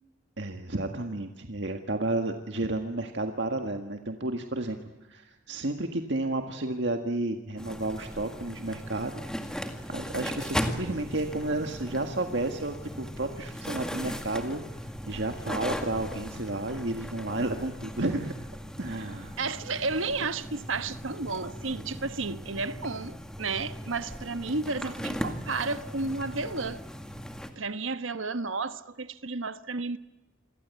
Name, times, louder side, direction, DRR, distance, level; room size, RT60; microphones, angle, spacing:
voice 1, 0.4-4.8 5.1-14.6 15.1-18.3 18.8-19.4, right 2 dB, 65° right, 1.7 m, -32 dB
sound 1, 7.6-27.5, equal, 5° left, 2.0 m, -38 dB
voice 2, 19.4-26.8 27.6-30.0, right 3 dB, 85° right, 1.3 m, -32 dB
28.5 x 22.5 x 8.3 m
head